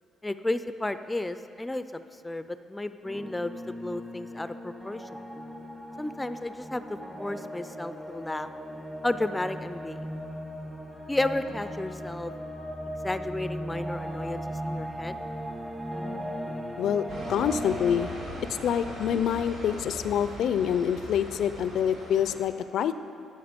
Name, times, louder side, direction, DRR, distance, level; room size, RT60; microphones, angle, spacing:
voice 1, 0.2-5.2 6.0-6.8 7.2-8.5 9.0-10.1 11.1-12.3 13.0-15.2, left 2 dB, 10° left, 11 dB, 0.4 m, -32 dB
sound 1, 3.0-18.1, equal, 20° right, 1.2 m, -37 dB
sound 2, 17.1-22.4, right 1 dB, 90° right, 2.5 m, -40 dB
voice 2, 17.3-18.1 18.6-22.9, left 9 dB, 75° left, 12 dB, 0.4 m, -26 dB
12.0 x 6.7 x 5.2 m, 2.5 s
cardioid pair, 90°, 0 cm